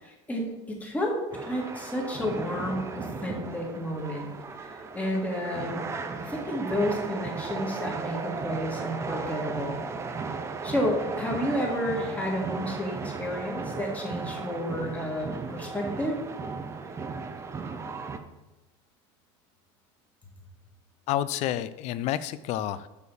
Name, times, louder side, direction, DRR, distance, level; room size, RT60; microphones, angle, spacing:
voice 1, 0.0-4.3 4.9-5.8 6.2-9.8 10.6-16.2, equal, 10° left, -1 dB, 1.7 m, -31 dB
sound 1, 1.3-18.2, right 4 dB, 15° right, 0.5 m, -36 dB
voice 2, 21.1-22.9, left 12 dB, 45° left, 15 dB, 0.4 m, -29 dB
6.8 x 4.6 x 6.9 m, 1.0 s
cardioid pair, 150°, 16 cm